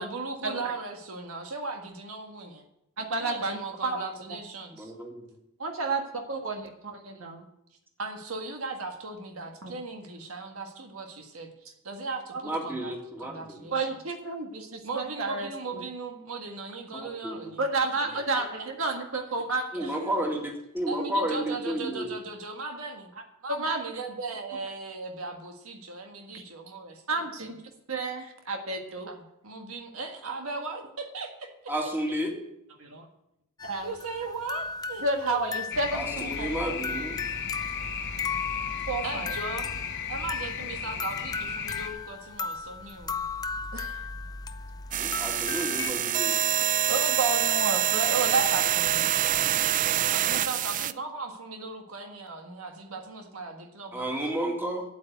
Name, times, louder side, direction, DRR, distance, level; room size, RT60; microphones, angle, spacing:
voice 1, 0.0-2.6 3.2-4.9 8.0-11.5 11.8-12.9 13.2-13.9 14.8-17.6 18.1-18.4 19.8-20.2 20.9-23.1 23.4-27.5 29.1-31.7 33.8-35.5 39.0-39.7 40.1-43.2 50.1-54.1, right 3 dB, 85° right, 3 dB, 1.8 m, -38 dB
voice 2, 3.0-4.0 5.6-7.4 9.6-9.7 12.3-12.4 13.7-15.8 17.6-19.6 23.6-24.0 26.3-26.4 27.1-27.6 27.9-29.1 32.8-33.1 33.6-33.9 35.0-36.7 38.9-39.3 43.7-44.0 46.9-49.1, right 3 dB, 70° right, 3 dB, 1.7 m, -31 dB
voice 3, 4.8-5.3 12.4-13.7 16.9-17.4 19.7-22.1 31.7-32.3 35.9-37.2 45.0-46.3 53.9-54.8, right 1 dB, 10° right, 1 dB, 2.1 m, -32 dB
sound 1, 33.6-45.9, left 5 dB, 20° left, 0.4 m, -36 dB
sound 2, 35.7-41.9, left 6 dB, 60° left, 1.0 m, -35 dB
sound 3, 44.9-50.9, right 11 dB, 40° right, 0.4 m, -26 dB
8.8 x 8.8 x 7.9 m, 0.81 s
head